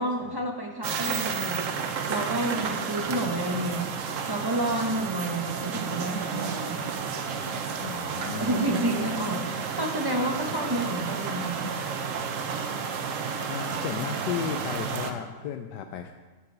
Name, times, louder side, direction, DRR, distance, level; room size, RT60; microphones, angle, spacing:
voice 1, 0.0-1.7 2.1-4.0 4.3-6.8 8.3-11.7, right 1 dB, 20° right, 1 dB, 0.6 m, -30 dB
sound 1, 0.8-15.1, right 6 dB, 60° right, 1.0 m, -32 dB
voice 2, 7.8-8.7 10.5-10.6 13.5-16.1, left 8 dB, 90° left, 6 dB, 1.2 m, -34 dB
8.0 x 6.1 x 7.2 m, 1.2 s
omnidirectional pair, 1.8 m